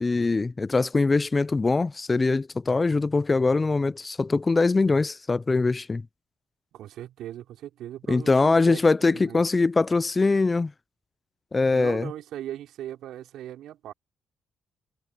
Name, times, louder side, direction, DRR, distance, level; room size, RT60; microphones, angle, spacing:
voice 1, 0.0-6.0 8.1-10.7 11.5-12.1, left 3 dB, 25° left, 0.4 m, -22 dB
voice 2, 6.7-9.4 11.7-13.9, right 12 dB, 80° right, 4.2 m, -39 dB
cardioid pair, 90°, 0 cm